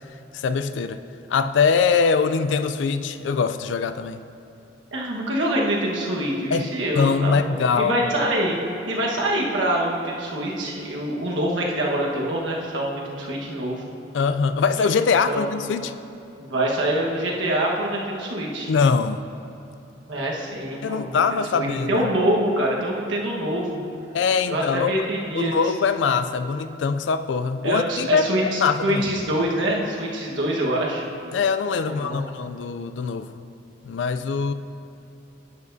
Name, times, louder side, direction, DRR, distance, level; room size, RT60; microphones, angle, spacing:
voice 1, 0.3-1.0 1.3-4.2 6.5-6.7 7.0-8.0 14.1-15.9 18.7-19.3 20.8-22.0 24.1-24.9 25.3-28.3 28.6-29.1 31.3-33.5 33.9-34.5, left 5 dB, 70° left, 11 dB, 0.4 m, -22 dB
voice 2, 4.9-8.6 8.9-13.8 15.3-15.5 16.4-18.7 20.1-21.2 21.5-23.8 24.5-25.5 27.6-31.0 31.8-32.3, right 1 dB, 85° right, -2 dB, 1.3 m, -25 dB
11.0 x 8.2 x 2.7 m, 2.8 s
head